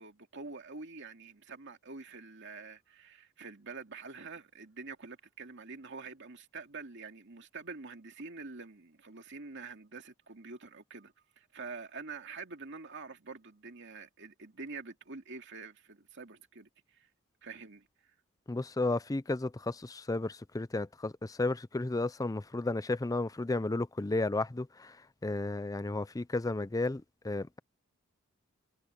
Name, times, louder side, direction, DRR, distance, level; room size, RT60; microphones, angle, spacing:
voice 1, 0.0-17.1 17.4-17.9, right 4 dB, 60° right, 2.5 m, -46 dB
voice 2, 18.5-27.6, left 2 dB, 15° left, 0.5 m, -33 dB
head